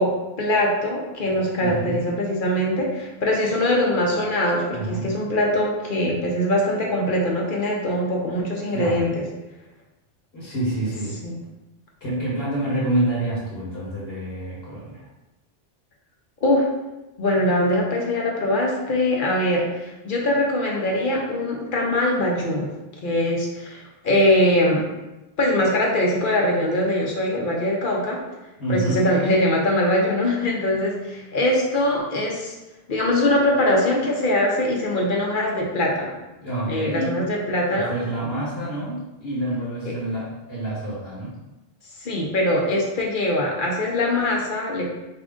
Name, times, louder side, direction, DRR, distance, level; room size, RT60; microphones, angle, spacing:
voice 1, 0.0-9.2 11.2-11.4 16.4-16.6 17.2-22.7 23.0-24.8 25.4-28.2 28.7-32.6 32.9-36.1 36.7-38.0 39.8-40.0 42.0-44.9, left 1 dB, 55° left, -2 dB, 0.9 m, -22 dB
voice 2, 1.6-1.9 4.7-5.1 8.7-9.1 10.3-11.3 12.0-15.1 28.6-29.0 36.4-37.2 37.7-41.3, right 1 dB, 75° left, -7 dB, 1.4 m, -27 dB
4.6 x 2.5 x 3.5 m, 1.0 s
omnidirectional pair, 1.0 m